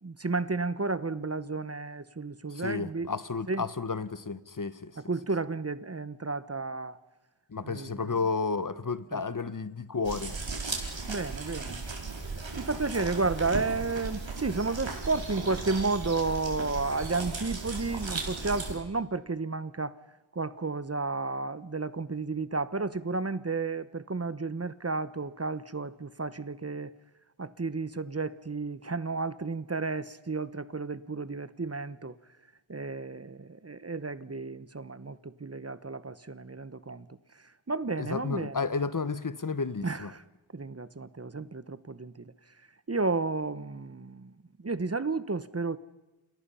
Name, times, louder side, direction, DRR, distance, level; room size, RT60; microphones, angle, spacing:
voice 1, 0.0-3.1 3.5-3.7 5.0-7.0 7.6-8.1 9.1-9.3 11.1-11.8 12.6-20.0 20.3-26.9 27.4-32.2 32.7-37.1 37.7-38.7 39.8-40.2 40.5-42.3 42.9-44.3 44.6-45.8, right 3 dB, 30° right, 1.1 m, -32 dB
voice 2, 2.5-4.9 7.5-10.3 38.0-40.1, left 4 dB, 40° left, 1.2 m, -32 dB
sound 1, 10.0-18.8, right 3 dB, 70° right, 5.0 m, -36 dB
29.5 x 27.5 x 5.7 m
wide cardioid pair, 70°, 47 cm